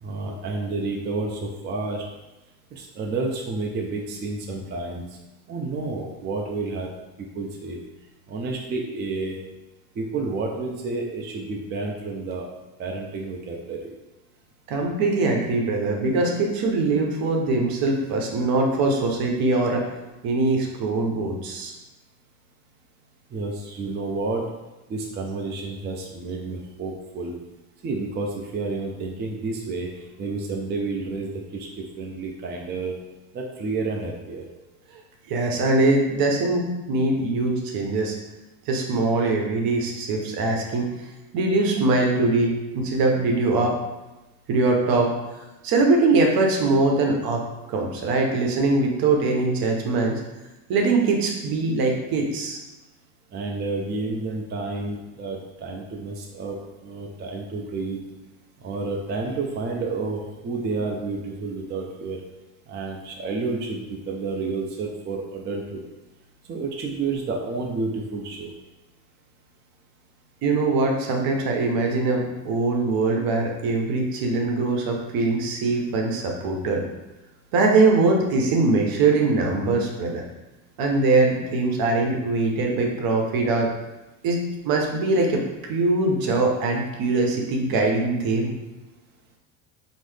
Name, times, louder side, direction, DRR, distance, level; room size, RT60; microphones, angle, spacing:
voice 1, 0.0-2.0 2.7-5.1 5.5-6.9 7.3-7.8 8.3-9.4 10.0-12.5 12.8-13.9 23.3-24.5 24.9-27.4 27.8-29.9 30.2-32.9 33.3-34.5 53.3-58.0 58.6-62.2 62.7-65.8 66.5-68.5, right 3 dB, 25° right, 0 dB, 0.4 m, -30 dB
voice 2, 14.7-19.8 20.2-21.7 35.3-38.2 38.7-40.9 41.3-43.8 44.5-45.1 45.6-47.4 47.7-50.2 50.7-52.6 70.4-76.8 77.5-80.2 80.8-83.7 84.2-85.4 85.7-88.6, right 3 dB, 60° right, 1 dB, 0.8 m, -22 dB
3.7 x 2.0 x 3.2 m, 1.0 s
supercardioid pair, 85°, 41 cm